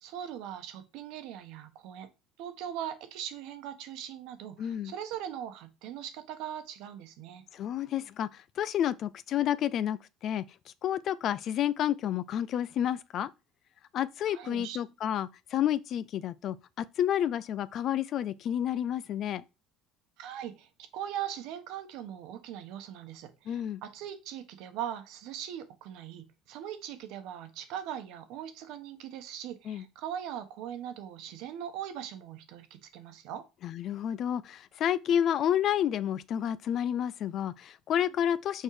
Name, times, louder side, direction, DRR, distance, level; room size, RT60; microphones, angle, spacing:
voice 1, 0.0-2.1 2.4-7.4 14.3-14.8 20.2-33.4, right 10 dB, 75° right, 1.3 m, -40 dB
voice 2, 4.6-4.9 7.5-10.4 10.8-13.3 13.9-19.4 23.5-23.8 29.7-29.8 33.6-38.6, left 10 dB, 50° left, 0.4 m, -30 dB
6.4 x 4.6 x 4.8 m
cardioid pair, 130°, 0 cm